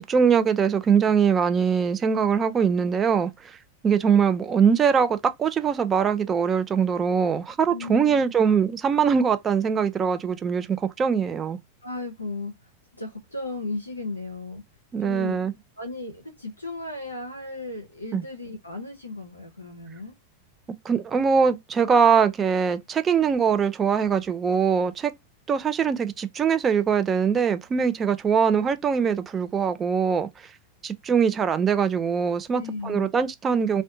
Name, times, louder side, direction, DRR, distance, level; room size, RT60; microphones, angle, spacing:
voice 1, 0.0-3.3 3.8-11.6 14.9-15.5 18.1-18.2 20.8-25.1 25.5-30.3 30.8-33.8, right 6 dB, 20° right, 0.3 m, -22 dB
voice 2, 7.7-8.3 11.8-14.6 15.0-15.4 15.8-20.1 32.5-33.1, left 3 dB, 85° left, 0.5 m, -35 dB
2.4 x 2.2 x 2.6 m
figure-of-eight pair, 90°, 0 cm